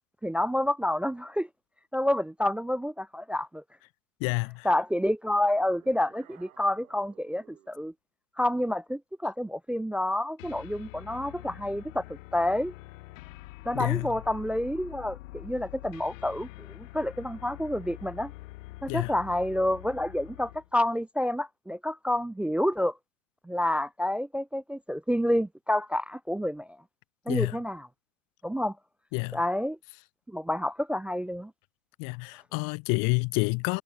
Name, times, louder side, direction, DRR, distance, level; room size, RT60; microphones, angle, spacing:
voice 1, 0.2-1.5 1.9-3.6 4.6-7.9 8.4-12.0 12.3-12.7 13.7-18.3 18.8-22.9 23.4-26.7 27.3-27.9 28.4-28.8 29.3-29.8 30.3-31.5, left 1 dB, 5° right, 0.3 m, -29 dB
voice 2, 4.2-4.7 13.7-14.1 18.9-19.1 27.3-27.6 29.1-29.4 32.0-33.8, left 35 dB, 50° left, 1.5 m, -28 dB
sound 1, 5.5-7.8, right 12 dB, 90° right, 4.6 m, -58 dB
sound 2, 10.4-20.7, left 19 dB, 70° left, 1.9 m, -45 dB
supercardioid pair, 120°, 40 cm